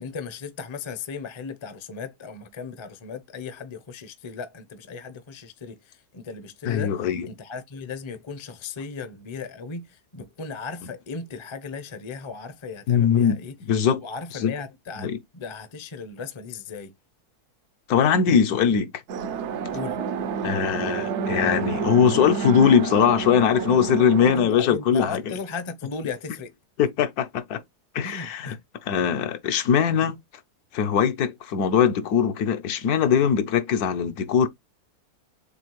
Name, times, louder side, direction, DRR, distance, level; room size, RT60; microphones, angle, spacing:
voice 1, 0.0-7.0 7.3-13.5 14.0-16.9 19.7-20.0 24.3-26.5 28.0-28.6, left 5 dB, 35° left, 0.5 m, -36 dB
voice 2, 6.6-7.3 12.9-13.4 13.7-14.0 14.3-14.5 15.0-15.2 17.9-18.9 20.4-25.2 26.8-27.6 27.9-28.6 28.8-30.2 30.7-34.5, left 7 dB, 75° left, 1.2 m, -21 dB
sound 1, 19.1-24.4, right 6 dB, 65° right, 0.7 m, -29 dB
6.9 x 2.4 x 3.1 m
omnidirectional pair, 1.7 m